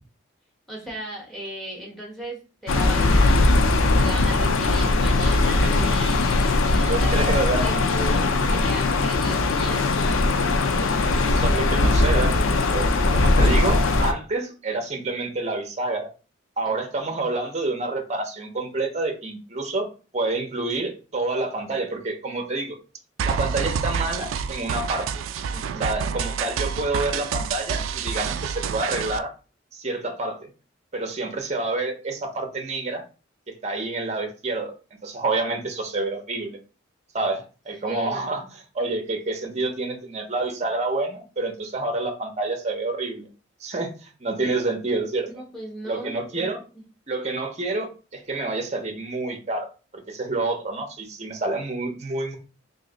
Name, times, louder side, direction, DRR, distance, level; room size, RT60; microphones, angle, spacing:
voice 1, 0.7-3.6 4.0-7.3 7.6-10.3 16.6-16.8 25.5-25.9 37.9-38.4 45.3-46.6, right 1 dB, ahead, -3 dB, 1.3 m, -37 dB
sound 1, 2.7-14.1, left 2 dB, 90° left, 0.5 m, -20 dB
voice 2, 5.1-5.9 6.7-7.8 11.3-16.1 16.6-19.9 20.1-22.8 23.2-25.1 25.8-29.3 29.7-30.5 30.9-33.0 33.5-34.7 35.0-36.6 37.1-38.4 38.7-43.3 43.6-45.3 45.9-46.6 47.1-49.7 49.9-52.4, right 2 dB, 35° right, 4 dB, 0.7 m, -28 dB
sound 2, 23.2-29.2, right 6 dB, 85° right, 0.3 m, -28 dB
3.1 x 2.6 x 3.8 m, 0.34 s
head